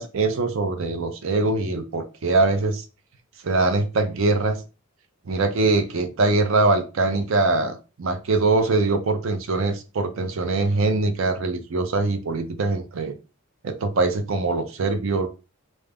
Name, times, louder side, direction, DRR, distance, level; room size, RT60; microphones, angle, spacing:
voice 1, 0.0-2.8 3.4-4.6 5.3-13.2 13.6-15.3, right 3 dB, 65° right, 8 dB, 0.5 m, -22 dB
2.3 x 2.0 x 3.4 m, 0.31 s
head